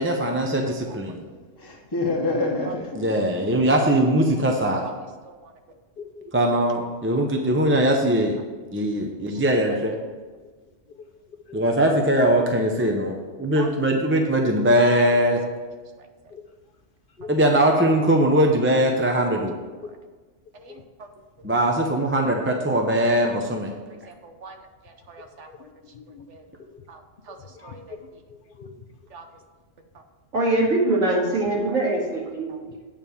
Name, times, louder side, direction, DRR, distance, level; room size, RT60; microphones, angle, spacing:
voice 1, 0.0-1.2 3.0-4.8 6.3-8.4 8.7-9.9 11.5-15.4 17.3-19.6 21.4-23.7, right 1 dB, 15° right, 2 dB, 0.6 m, -21 dB
voice 2, 0.6-1.4 2.6-2.7 5.2-5.5 9.3-9.8 12.4-12.5 12.8-12.9 13.6-13.7 16.0-16.1 19.8-20.0 20.5-21.1 23.2-23.4 24.1-25.7 26.3-26.4 26.9-28.0 29.1-29.3 29.9-30.0 31.7-31.8 32.5-32.6, right 4 dB, 65° right, 6 dB, 1.1 m, -45 dB
voice 3, 1.6-3.6, left 2 dB, 20° left, -1 dB, 0.9 m, -27 dB
voice 4, 25.5-26.2 26.7-26.8 27.6-27.8 28.3-28.7, left 6 dB, 50° left, 6 dB, 0.7 m, -42 dB
voice 5, 30.3-32.5, right 2 dB, 85° right, -5 dB, 2.8 m, -22 dB
9.1 x 4.7 x 7.1 m, 1.4 s
omnidirectional pair, 1.3 m